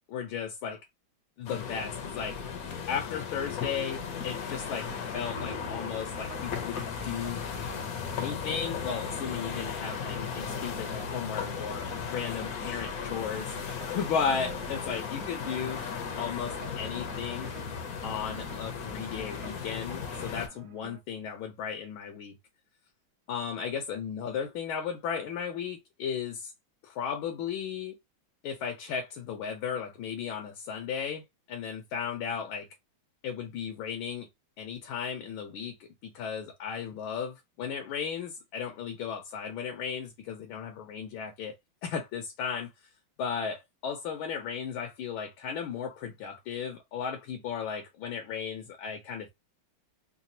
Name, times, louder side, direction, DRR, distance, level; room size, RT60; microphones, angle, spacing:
voice 1, 0.1-0.8 1.4-2.4 2.9-7.4 8.1-13.5 13.9-15.8 16.2-17.5 18.0-22.3 23.3-26.5 26.8-27.9 28.4-32.7 33.2-34.3 34.6-41.6 41.8-42.7 43.2-49.3, left 7 dB, 80° left, 1.6 m, -35 dB
sound 1, 1.5-20.5, left 6 dB, 60° left, 1.0 m, -36 dB
sound 2, 4.4-21.0, right 10 dB, 70° right, 1.2 m, -51 dB
3.9 x 2.3 x 2.6 m
omnidirectional pair, 2.2 m